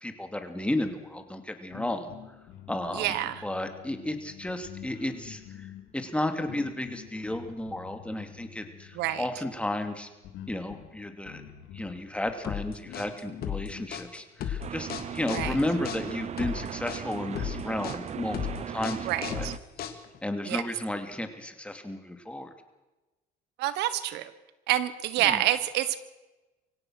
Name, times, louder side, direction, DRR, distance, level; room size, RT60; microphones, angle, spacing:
voice 1, 0.0-2.1 2.7-3.1 3.4-5.7 5.9-10.1 10.5-11.4 11.7-18.4 18.7-19.5 20.2-22.5 25.2-25.4, left 1 dB, 5° left, 6 dB, 2.6 m, -33 dB
sound 1, 1.7-13.9, left 10 dB, 90° left, 2.6 m, -48 dB
voice 2, 2.9-3.4 8.9-9.3 15.3-15.6 19.1-19.5 20.4-20.6 23.6-24.3 24.7-26.0, right 13 dB, 85° right, 14 dB, 1.3 m, -28 dB
sound 2, 12.4-20.3, left 9 dB, 65° left, 2.3 m, -35 dB
sound 3, 14.6-19.6, right 9 dB, 40° right, 0.6 m, -37 dB
24.5 x 16.5 x 6.4 m, 1.1 s
cardioid pair, 110°, 17 cm